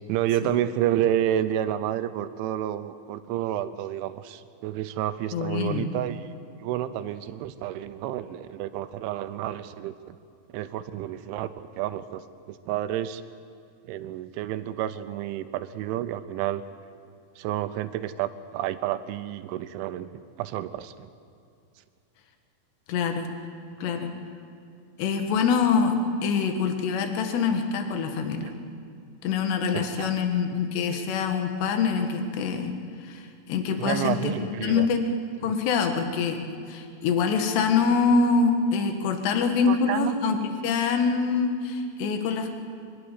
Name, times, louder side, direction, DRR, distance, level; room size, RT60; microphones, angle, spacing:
voice 1, 0.1-6.3 6.6-10.2 10.5-13.2 13.9-16.6 17.4-20.1 20.4-20.9 29.7-30.1 33.8-34.9 39.7-40.2, right 12 dB, 80° right, 11 dB, 3.0 m, -30 dB
voice 2, 5.3-5.9 22.9-23.3 23.8-24.1 25.0-28.5 29.2-32.7 33.0-34.3 34.6-35.0 35.4-42.5, left 5 dB, 65° left, 5 dB, 3.4 m, -25 dB
25.5 x 12.0 x 9.9 m, 2.4 s
omnidirectional pair, 5.7 m